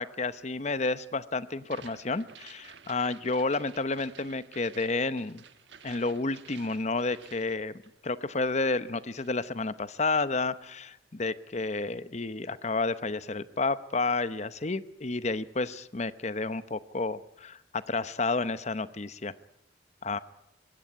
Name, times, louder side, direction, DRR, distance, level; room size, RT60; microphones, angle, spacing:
voice 1, 0.0-5.4 5.8-19.3 20.0-20.2, left 3 dB, 35° left, 14 dB, 0.8 m, -31 dB
sound 1, 1.6-8.2 8.4-9.4, right 7 dB, 70° right, 1.4 m, -53 dB
22.0 x 16.5 x 9.4 m, 0.82 s
head